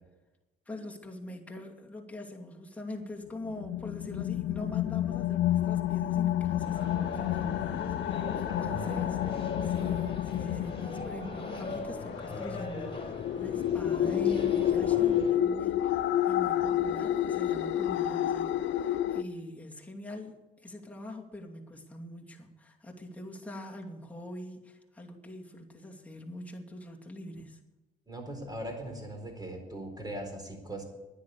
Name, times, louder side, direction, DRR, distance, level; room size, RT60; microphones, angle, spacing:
voice 1, 0.7-20.3 20.6-27.6, left 1 dB, 5° left, -1 dB, 2.6 m, -43 dB
sound 1, 3.5-19.2, left 11 dB, 75° left, 0.5 m, -30 dB
sound 2, 6.6-15.3, left 3 dB, 30° left, 4.4 m, -39 dB
voice 2, 8.5-9.3 28.1-30.8, right 1 dB, 20° right, 4 dB, 4.3 m, -40 dB
11.0 x 10.0 x 8.4 m, 1.1 s
cardioid pair, 90°, 20 cm